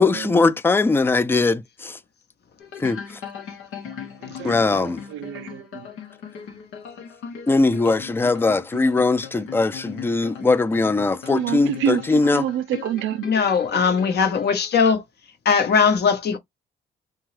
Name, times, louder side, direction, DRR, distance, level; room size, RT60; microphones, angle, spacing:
voice 1, 0.0-2.0 2.8-3.2 4.4-5.0 7.5-12.4, left 3 dB, 10° left, 0.3 m, -20 dB
sound 1, 2.6-14.9, left 7 dB, 90° left, 0.8 m, -38 dB
voice 2, 4.2-5.9 11.3-12.0 12.3-13.3, right 10 dB, 80° right, 0.4 m, -28 dB
voice 3, 13.2-15.0 15.4-16.4, left 6 dB, 55° left, 0.8 m, -19 dB
2.8 x 2.3 x 3.1 m
cardioid pair, 90°, 20 cm